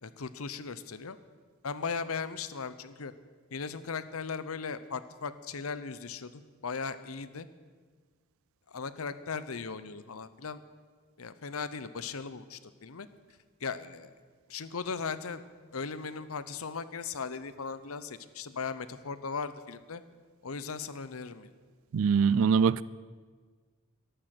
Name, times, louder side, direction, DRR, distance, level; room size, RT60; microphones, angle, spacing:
voice 1, 0.0-1.2 1.6-3.1 3.5-7.5 8.7-10.6 11.2-13.1 13.6-14.1 14.5-15.4 15.7-20.0 20.4-21.5, left 5 dB, 80° left, 0.8 m, -38 dB
voice 2, 21.9-22.8, right 6 dB, 70° right, 0.4 m, -23 dB
13.5 x 11.5 x 7.7 m
head